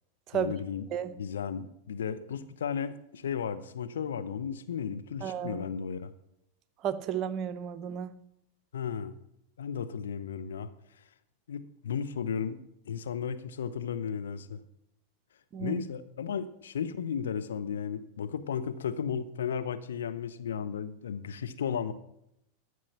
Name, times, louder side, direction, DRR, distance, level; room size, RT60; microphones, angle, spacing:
voice 1, 0.3-0.9 1.2-6.1 8.7-9.1 9.6-10.7 11.5-14.6 15.6-21.9, left 7 dB, 75° left, 10 dB, 0.8 m, -34 dB
voice 2, 5.2-5.6 6.8-8.2 15.5-15.8, right 8 dB, 40° right, 13 dB, 0.7 m, -33 dB
13.0 x 6.4 x 5.8 m, 0.80 s
hypercardioid pair, 95°, 0 cm